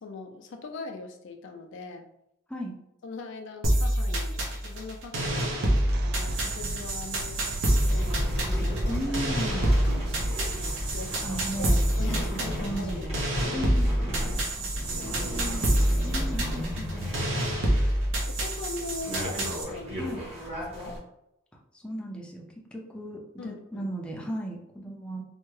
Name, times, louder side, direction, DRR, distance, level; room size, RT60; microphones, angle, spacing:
voice 1, 0.0-2.1 3.0-5.6 6.0-9.2 9.7-10.0 10.9-13.6 14.0-14.5 14.9-16.2 18.3-21.0 23.4-23.9, left 3 dB, 65° left, 5 dB, 0.4 m, -42 dB
sound 1, 3.6-19.6, right 1 dB, 70° right, 0.7 m, -27 dB
sound 2, 5.2-16.5, right 2 dB, 55° right, 0.3 m, -42 dB
sound 3, 7.7-21.0, equal, 35° right, 1.2 m, -33 dB
voice 2, 8.9-9.7 11.2-11.8 12.1-13.2 13.5-14.1 14.6-17.4 20.0-20.2 21.5-22.4 22.7-25.2, equal, 5° left, -1 dB, 0.5 m, -36 dB
3.4 x 2.1 x 3.1 m, 0.82 s
head